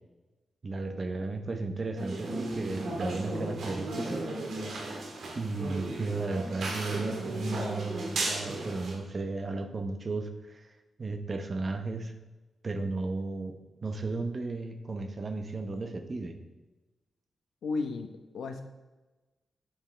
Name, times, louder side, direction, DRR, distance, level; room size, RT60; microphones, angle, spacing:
voice 1, 0.6-4.3 5.3-12.1 12.6-13.5 13.8-16.4, right 3 dB, 30° right, 7 dB, 0.8 m, -34 dB
sound 1, 2.0-9.0, right 2 dB, 70° right, 1.8 m, -35 dB
voice 2, 17.6-18.6, left 4 dB, 85° left, 6 dB, 0.9 m, -34 dB
9.0 x 7.1 x 3.3 m, 1.1 s
wide cardioid pair, 145°, 0 cm